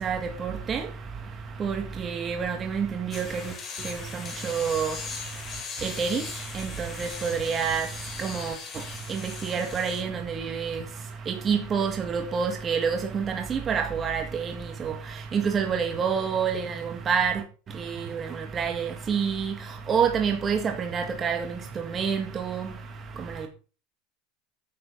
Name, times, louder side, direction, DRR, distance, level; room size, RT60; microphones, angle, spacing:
voice 1, 0.0-0.8 1.6-2.9 3.1-3.2 3.9-4.0 4.4-4.9 5.8-6.2 7.0-7.9 8.2-8.5 9.1-9.2 9.5-10.8 11.3-13.2 13.5-14.5 14.8-14.9 15.3-16.7 17.1-17.3 18.6-19.5 19.9-21.4 21.9-22.6, right 6 dB, 30° right, 1.8 m, -27 dB
sound 1, 3.1-10.0, left 4 dB, 30° left, 4.0 m, -39 dB
9.5 x 6.8 x 5.3 m
supercardioid pair, 120°, 0 cm